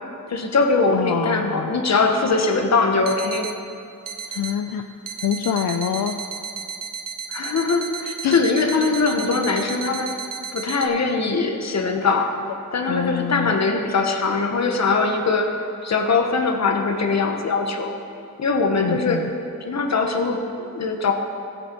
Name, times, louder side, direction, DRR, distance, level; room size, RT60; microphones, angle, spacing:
voice 1, 0.3-3.5 7.3-10.1 10.5-12.3 12.7-15.5 15.8-17.9 18.4-19.2 19.7-21.1, left 4 dB, 50° left, 4 dB, 1.1 m, -21 dB
voice 2, 0.9-1.7 4.3-4.9 5.2-6.2 8.2-8.4 12.9-13.5 18.8-19.3, left 8 dB, 75° left, 5 dB, 0.5 m, -25 dB
sound 1, 2.5-2.6 3.1-3.6 4.1-4.6 5.1-10.9, right 6 dB, 70° right, 0.8 m, -34 dB
19.0 x 6.4 x 4.5 m, 2.6 s
wide cardioid pair, 170°, 35 cm